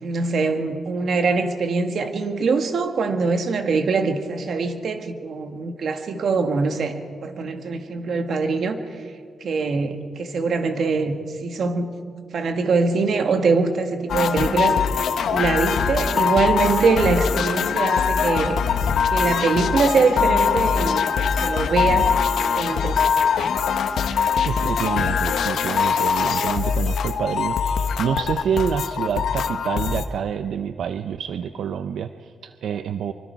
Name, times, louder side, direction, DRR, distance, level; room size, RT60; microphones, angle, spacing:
voice 1, 0.0-8.8 9.4-11.2 11.4-11.9 12.3-14.8 15.3-18.6 19.1-22.1 22.6-23.1, right 4 dB, 65° right, 6 dB, 1.9 m, -23 dB
sound 1, 14.1-30.1, left 6 dB, 85° left, 1.2 m, -22 dB
voice 2, 24.4-33.1, right 8 dB, 85° right, 9 dB, 0.6 m, -27 dB
25.0 x 24.5 x 4.7 m, 2.2 s
wide cardioid pair, 130°, 0 cm